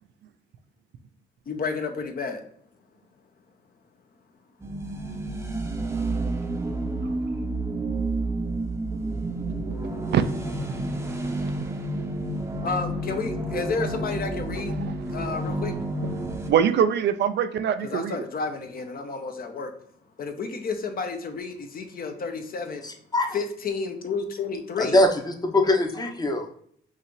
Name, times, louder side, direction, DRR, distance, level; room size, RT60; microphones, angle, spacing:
voice 1, 1.5-2.4 12.6-14.8 15.1-15.7 17.8-19.7 20.2-22.8 23.3-25.0, left 4 dB, 45° left, 6 dB, 0.8 m, -31 dB
sound 1, 4.6-16.5, right 2 dB, 15° right, 0.7 m, -30 dB
voice 2, 16.3-18.2, right 8 dB, 60° right, 10 dB, 0.4 m, -23 dB
voice 3, 22.8-23.3 24.8-26.5, left 1 dB, 20° left, 3 dB, 0.8 m, -22 dB
5.6 x 2.5 x 3.1 m, 0.63 s
cardioid pair, 90°, 20 cm